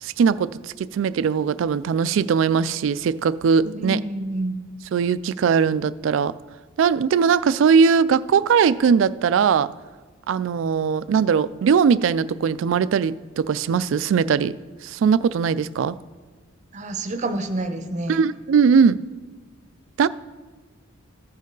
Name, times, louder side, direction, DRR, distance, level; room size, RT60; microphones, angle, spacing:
voice 1, 0.0-4.0 4.9-6.3 6.8-9.7 10.3-14.6 14.8-16.0 18.1-19.0 20.0-20.1, right 6 dB, 65° right, 0.3 m, -20 dB
voice 2, 3.7-4.6 16.7-18.2, right 2 dB, 35° right, 0.7 m, -28 dB
14.5 x 5.3 x 3.9 m
head